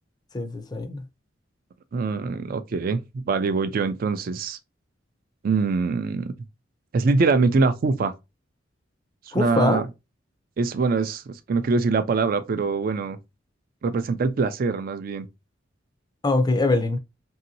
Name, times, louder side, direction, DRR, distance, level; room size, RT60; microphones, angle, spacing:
voice 1, 0.3-1.0 9.3-9.9 16.2-17.0, left 2 dB, 20° left, 0.4 m, -23 dB
voice 2, 1.9-4.6 5.4-6.3 6.9-8.1 9.3-9.8 10.6-13.2 13.8-15.3, right 4 dB, 50° right, 0.3 m, -23 dB
2.9 x 2.7 x 2.6 m
head